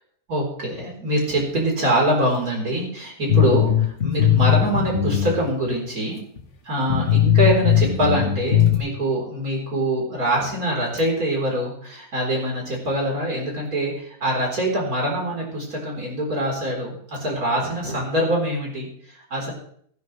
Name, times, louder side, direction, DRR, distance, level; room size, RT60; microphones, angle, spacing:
voice 1, 0.3-6.2 6.7-19.5, right 1 dB, 60° right, -2 dB, 4.4 m, -24 dB
sound 1, 3.3-5.4 5.6-5.7 6.4-6.5 6.9-8.8, left 10 dB, 50° left, 1.7 m, -19 dB
17.5 x 12.5 x 3.2 m, 0.63 s
omnidirectional pair, 1.7 m